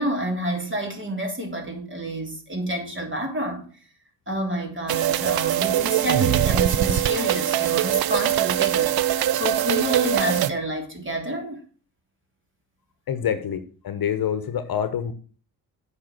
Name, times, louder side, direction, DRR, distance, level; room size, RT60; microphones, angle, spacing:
voice 1, 0.0-3.7 4.3-11.6, right 1 dB, 25° right, 3.2 m, -28 dB
sound 1, 4.9-10.5, right 12 dB, 55° right, 0.7 m, -22 dB
voice 2, 13.1-15.1, left 8 dB, 50° left, 1.2 m, -26 dB
8.4 x 5.2 x 6.3 m
hypercardioid pair, 45°, 44 cm